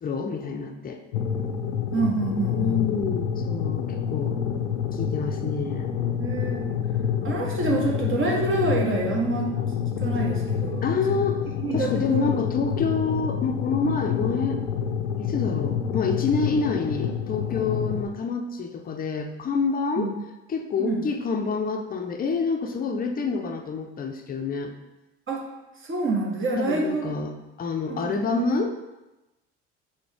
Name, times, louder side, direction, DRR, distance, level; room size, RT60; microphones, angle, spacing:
voice 1, 0.0-1.0 2.5-4.4 4.9-6.0 10.8-11.4 11.7-14.6 15.2-20.1 20.5-24.7 26.6-28.9, left 4 dB, 25° left, 5 dB, 0.6 m, -27 dB
sound 1, 1.1-18.0, left 8 dB, 80° left, 0.5 m, -28 dB
voice 2, 1.9-2.8 6.2-6.7 7.2-9.5 10.0-10.8 11.6-12.3 20.0-20.1 20.8-21.0 25.3-25.4 25.8-27.0 27.9-28.5, right 2 dB, 35° right, -1 dB, 1.2 m, -27 dB
5.9 x 2.2 x 3.4 m, 1.0 s
hypercardioid pair, 65°, 35 cm